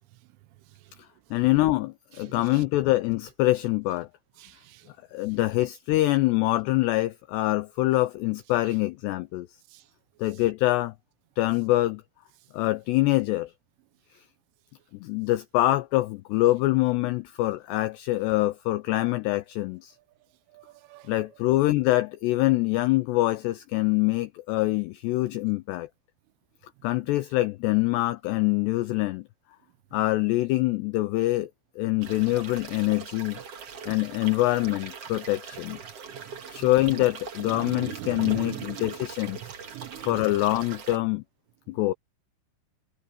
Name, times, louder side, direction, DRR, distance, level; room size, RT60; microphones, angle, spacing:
voice 1, 1.3-4.1 5.1-9.5 10.2-10.9 11.4-12.0 12.5-13.5 15.0-19.9 21.1-25.9 26.8-29.2 29.9-31.5 31.8-33.4 33.9-35.8 36.5-39.4 40.0-41.2 41.7-41.9, left 18 dB, 85° left, 2.4 m, -25 dB
voice 2, 2.2-2.6 4.4-4.9 9.7-9.8 20.5-21.1 36.1-36.7 37.4-39.0 39.4-40.2, right 18 dB, 80° right, 3.4 m, -41 dB
sound 1, 32.0-41.0, right 6 dB, 50° right, 1.9 m, -42 dB
omnidirectional pair, 5.6 m